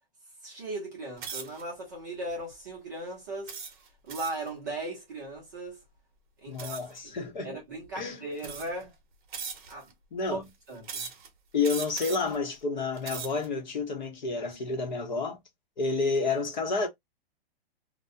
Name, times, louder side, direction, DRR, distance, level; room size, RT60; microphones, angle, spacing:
voice 1, 0.4-3.6 4.1-5.8 6.4-7.1 7.4-8.9 9.7-9.9 10.3-10.4 10.7-11.1, right 2 dB, 20° right, 0.6 m, -38 dB
sound 1, 1.2-1.6 2.3-2.5 3.5-4.5 6.6-7.0 7.8-7.9 8.4-8.9 9.3-9.9 10.8-11.3 11.6-12.4 12.9-13.5, right 6 dB, 55° right, 0.8 m, -39 dB
voice 2, 6.5-7.5 7.9-8.2 10.1-10.4 11.5-15.4 15.8-16.9, left 4 dB, 50° left, 0.8 m, -30 dB
2.3 x 2.1 x 2.6 m
hypercardioid pair, 180°, 30 cm